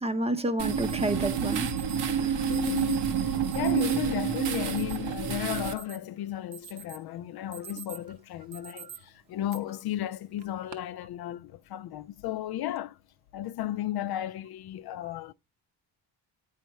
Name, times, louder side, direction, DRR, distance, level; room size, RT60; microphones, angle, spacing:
voice 1, 0.0-1.7 2.1-2.3 8.8-8.9, right 1 dB, 15° right, 0.7 m, -30 dB
sound 1, 0.6-5.7, right 8 dB, 70° right, 1.2 m, -29 dB
Alarm, 0.9-1.0 1.5-2.0 2.5-3.0 3.5-4.0 4.5-5.0 5.4-6.1 6.5-7.0 7.4-8.1 8.5-9.0 9.5-9.6 10.4-10.7, right 8 dB, 45° right, 1.0 m, -45 dB
voice 2, 2.5-13.0 13.3-15.3, left 13 dB, 65° left, 0.5 m, -34 dB
9.0 x 5.6 x 3.0 m
cardioid pair, 130°, 41 cm